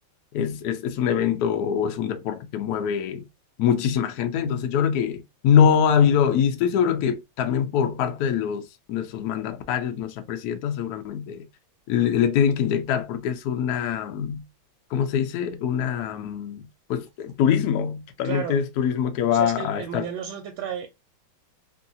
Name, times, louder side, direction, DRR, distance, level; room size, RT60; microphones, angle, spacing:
voice 1, 0.3-3.2 3.6-11.4 11.9-14.4 14.9-20.1, left 8 dB, 75° left, 0.8 m, -24 dB
voice 2, 18.2-18.6 19.3-20.9, right 9 dB, 80° right, 1.3 m, -32 dB
3.1 x 2.7 x 2.6 m
omnidirectional pair, 2.3 m